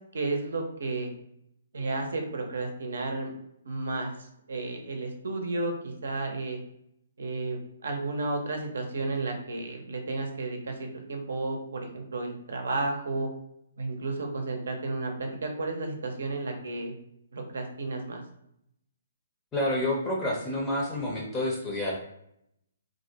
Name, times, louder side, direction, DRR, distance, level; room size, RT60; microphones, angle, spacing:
voice 1, 0.1-1.1 1.7-3.3 3.7-4.1 4.5-6.6 7.2-13.3 13.8-16.9 17.3-18.2, right 2 dB, 75° right, 3 dB, 0.6 m, -32 dB
voice 2, 19.5-22.0, left 1 dB, 15° left, -3 dB, 0.5 m, -29 dB
2.4 x 2.1 x 2.7 m, 0.76 s
hypercardioid pair, 150°, 0 cm